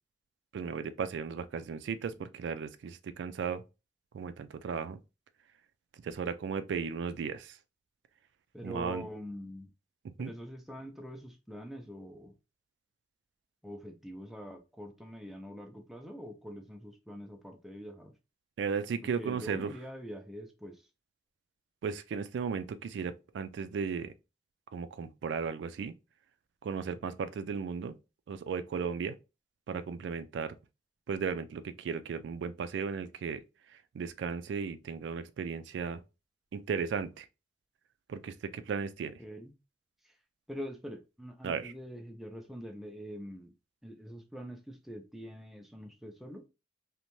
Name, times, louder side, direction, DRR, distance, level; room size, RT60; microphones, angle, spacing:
voice 1, 0.5-3.6 4.1-5.0 6.0-7.6 8.6-9.1 10.0-10.3 18.6-19.7 21.8-24.1 24.7-25.9 26.6-28.0 28.3-29.2 29.7-30.5 31.1-33.4 33.9-36.0 36.5-37.3 38.1-39.2 41.4-41.7, right 6 dB, 90° right, 0.3 m, -35 dB
voice 2, 8.5-9.7 10.2-12.3 13.6-18.1 19.2-20.8 39.2-39.5 40.5-43.5 43.8-46.4, equal, ahead, 0.3 m, -44 dB
2.6 x 2.1 x 2.9 m
head